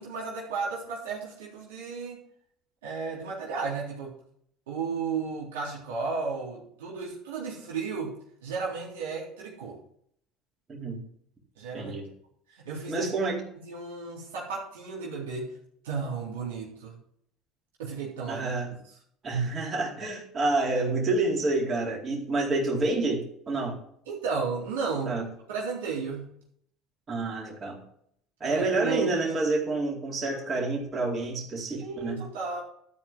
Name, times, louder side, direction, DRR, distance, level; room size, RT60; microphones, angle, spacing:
voice 1, 0.0-2.2 2.8-4.1 4.7-8.2 8.4-9.8 11.6-11.9 12.5-13.1 13.5-15.5 15.8-17.0 17.8-18.5 24.1-26.3 28.4-29.4 30.3-30.4 31.8-32.6, right 5 dB, 85° right, -3 dB, 3.6 m, -33 dB
voice 2, 10.7-11.0 11.7-12.1 12.9-13.4 18.3-18.7 19.2-23.8 25.1-25.2 27.1-27.8 28.4-32.2, right 2 dB, 35° right, -2 dB, 4.1 m, -28 dB
13.0 x 4.8 x 7.5 m, 0.66 s
hypercardioid pair, 80°, 0 cm